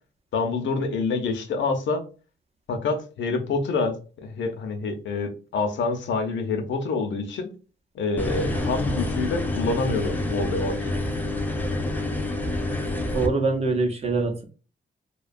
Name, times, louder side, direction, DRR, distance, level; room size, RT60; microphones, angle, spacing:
voice 1, 0.3-2.0 2.7-7.5 7.9-10.8, left 4 dB, 80° left, 6 dB, 0.6 m, -27 dB
sound 1, 8.2-13.3, left 1 dB, 10° left, 0.3 m, -27 dB
voice 2, 13.1-14.4, right 3 dB, 35° right, 3 dB, 0.6 m, -24 dB
2.7 x 2.2 x 2.5 m, 0.36 s
wide cardioid pair, 135°, 19 cm